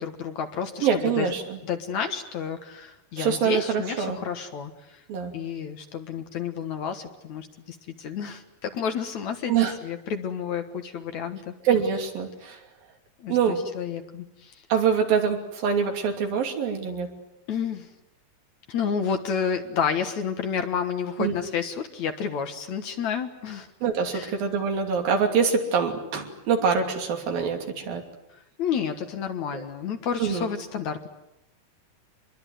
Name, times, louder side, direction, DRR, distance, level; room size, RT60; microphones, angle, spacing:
voice 1, 0.0-1.3 1.6-5.0 5.3-9.5 9.8-11.5 13.2-14.6 17.5-17.9 18.7-23.7 24.1-24.3 28.6-31.1, left 7 dB, 60° left, 7 dB, 2.6 m, -30 dB
voice 2, 0.8-1.6 3.2-4.2 5.1-5.3 9.5-9.8 11.6-12.6 13.3-13.6 14.7-17.1 21.2-21.4 23.8-28.0 29.5-29.6 30.2-30.5, right 6 dB, 85° right, 3 dB, 4.7 m, -25 dB
26.0 x 22.0 x 9.3 m, 0.87 s
omnidirectional pair, 4.0 m